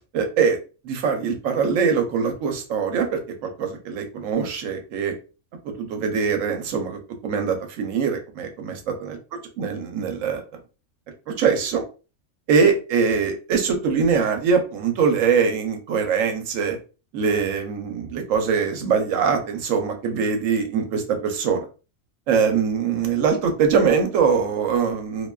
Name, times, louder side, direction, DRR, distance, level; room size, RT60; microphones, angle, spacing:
voice 1, 0.1-0.6 0.8-5.1 5.6-9.2 9.6-10.4 11.3-11.8 12.5-16.8 17.1-21.7 22.3-25.3, right 6 dB, 70° right, 5 dB, 0.9 m, -22 dB
2.6 x 2.1 x 2.2 m, 0.33 s
omnidirectional pair, 1.5 m